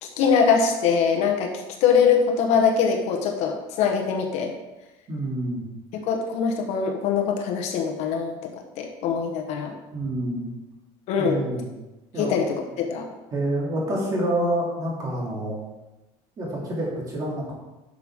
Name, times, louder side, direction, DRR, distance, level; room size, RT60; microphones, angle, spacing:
voice 1, 0.0-1.5 1.8-4.5 5.9-8.5 8.8-9.7 11.1-11.4 12.2-13.1, left 6 dB, 60° left, 3 dB, 1.3 m, -22 dB
voice 2, 5.1-5.7 9.9-10.5 11.2-11.7 12.1-12.3 13.3-15.6 16.4-17.5, right 1 dB, 25° right, -3 dB, 2.8 m, -27 dB
11.0 x 6.4 x 3.7 m, 1.1 s
cardioid pair, 160°, 13 cm